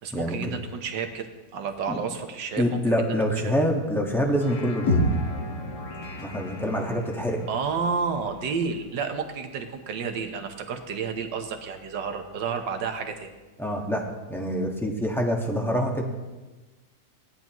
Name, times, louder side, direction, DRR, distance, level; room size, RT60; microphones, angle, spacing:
voice 1, 0.0-3.2 3.4-3.5 7.5-13.3, right 5 dB, 85° right, 6 dB, 1.7 m, -31 dB
voice 2, 2.6-5.0 6.2-7.4 13.6-14.0 14.3-16.0, equal, ahead, 0 dB, 1.3 m, -26 dB
sound 1, 4.1-9.6, left 3 dB, 50° left, 1.6 m, -45 dB
sound 2, 4.9-8.8, equal, 70° left, 2.2 m, -30 dB
18.0 x 11.0 x 3.0 m, 1.2 s
omnidirectional pair, 1.9 m